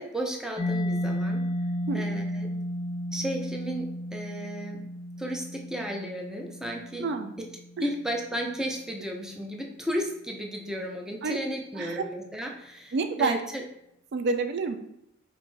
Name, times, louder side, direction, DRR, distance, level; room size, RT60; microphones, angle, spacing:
voice 1, 0.0-1.4 1.9-2.5 3.1-4.9 5.2-7.1 7.8-13.6, equal, 5° right, 1 dB, 0.5 m, -34 dB
Mallet percussion, 0.6-8.1, equal, 20° left, 0.9 m, -33 dB
voice 2, 12.9-13.4 14.1-14.8, right 4 dB, 60° right, 7 dB, 0.4 m, -28 dB
5.0 x 2.6 x 3.3 m, 0.78 s
head